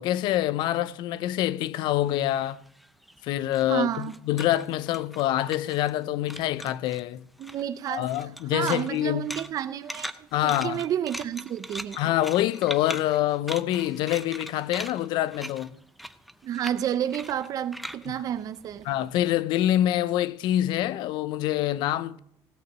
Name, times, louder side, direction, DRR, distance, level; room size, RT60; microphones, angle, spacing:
voice 1, 0.0-2.6 3.2-7.2 7.9-9.3 10.3-10.8 12.0-15.7 18.1-18.2 18.9-22.2, left 13 dB, 70° left, 0.5 m, -26 dB
sound 1, 2.1-6.0 6.3-7.0 7.4-19.2, equal, ahead, 0.5 m, -41 dB
voice 2, 3.7-4.2 7.4-8.1 8.5-12.0 16.4-18.9, right 10 dB, 45° right, 0.6 m, -30 dB
16.5 x 5.9 x 7.3 m
cardioid pair, 130°, 8 cm